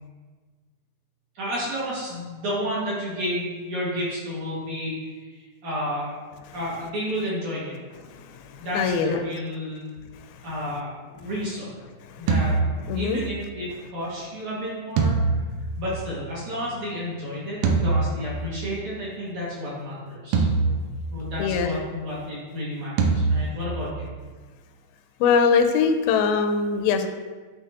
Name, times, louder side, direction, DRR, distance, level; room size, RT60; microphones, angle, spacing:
voice 1, 1.3-5.3 5.6-6.2 6.5-7.8 8.6-9.9 10.4-11.7 12.2-12.6 12.9-15.2 15.8-20.5 21.1-24.1, equal, 55° right, -8 dB, 2.8 m, -31 dB
voice 2, 8.5-9.2 12.1-12.2 12.9-13.2 21.4-21.8 25.2-27.1, left 5 dB, 85° left, 6 dB, 2.4 m, -22 dB
sound 1, 12.3-13.5 15.0-16.5 17.6-18.8 20.3-21.6 23.0-24.1, right 4 dB, 80° right, 2.3 m, -25 dB
10.5 x 3.5 x 2.8 m, 1.4 s
omnidirectional pair, 4.3 m